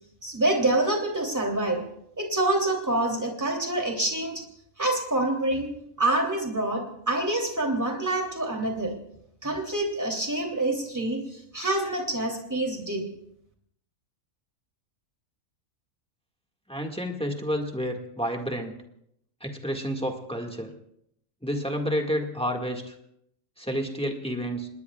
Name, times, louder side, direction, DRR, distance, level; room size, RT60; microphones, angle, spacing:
voice 1, 0.2-1.8 2.2-4.4 4.8-5.7 6.0-8.9 9.4-13.1, right 2 dB, 10° right, 1 dB, 3.1 m, -26 dB
voice 2, 16.7-18.8 19.4-20.7 21.4-23.0 23.6-24.7, equal, 5° left, 2 dB, 1.8 m, -30 dB
28.0 x 20.0 x 2.4 m, 0.74 s
omnidirectional pair, 1.5 m